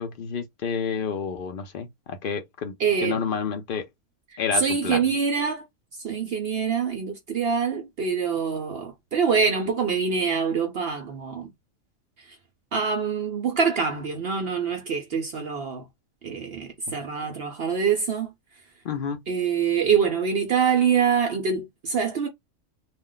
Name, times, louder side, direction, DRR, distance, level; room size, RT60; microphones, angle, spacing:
voice 1, 0.0-3.9 4.4-5.0 18.8-19.2, left 6 dB, 70° left, 0.5 m, -30 dB
voice 2, 2.8-3.2 4.3-5.6 6.0-11.5 12.7-15.8 16.2-18.3 19.3-22.3, right 6 dB, 60° right, 0.7 m, -25 dB
2.4 x 2.1 x 3.7 m
omnidirectional pair, 1.5 m